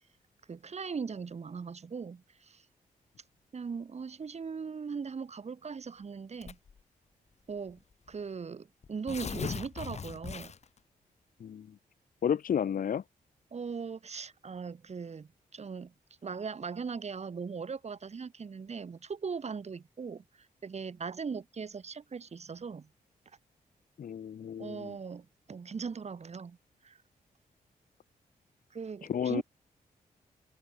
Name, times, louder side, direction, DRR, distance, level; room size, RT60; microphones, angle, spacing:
voice 1, 0.5-2.6 3.5-6.6 7.5-7.8 8.1-10.5 13.5-15.9 16.2-20.2 20.6-22.9 24.6-26.6 26.8-27.0 28.7-29.4, right 5 dB, 45° right, 1.8 m, -39 dB
Tearing, 6.4-6.8 7.7-7.8 8.1-8.2 8.8-10.8, left 6 dB, 45° left, 1.2 m, -39 dB
voice 2, 12.2-13.0 24.0-24.9 29.1-29.4, left 8 dB, 65° left, 1.5 m, -31 dB
open air
cardioid pair, 70°, 15 cm